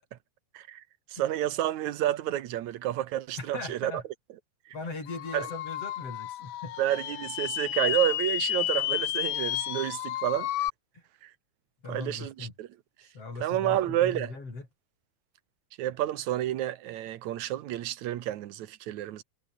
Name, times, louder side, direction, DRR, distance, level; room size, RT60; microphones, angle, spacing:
voice 1, 1.1-4.0 4.7-4.8 5.3-5.5 6.8-10.5 11.2-11.3 11.9-12.7 13.4-14.3 15.8-19.2, right 13 dB, 75° right, 2.5 m, -30 dB
voice 2, 3.4-4.0 4.7-6.8 11.8-12.5 13.1-14.7, left 3 dB, 50° left, 7.5 m, -39 dB
sound 1, 5.1-10.7, left 14 dB, 70° left, 1.5 m, -32 dB
omnidirectional pair, 3.3 m